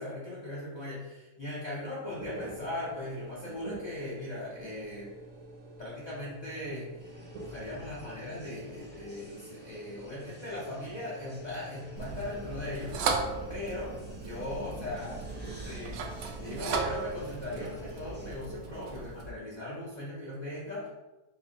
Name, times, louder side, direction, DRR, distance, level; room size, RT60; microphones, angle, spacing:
voice 1, 0.0-5.1 5.8-13.0 13.5-14.0 14.2-15.3 15.6-16.0 16.4-20.9, left 1 dB, 55° left, -6 dB, 0.4 m, -39 dB
sound 1, 2.1-19.0, right 2 dB, 55° right, 1.0 m, -48 dB
sound 2, 7.0-18.4, left 1 dB, 15° right, 0.3 m, -52 dB
sound 3, 12.0-19.3, right 4 dB, 75° right, 1.1 m, -36 dB
5.5 x 2.1 x 3.9 m, 1.1 s
omnidirectional pair, 2.1 m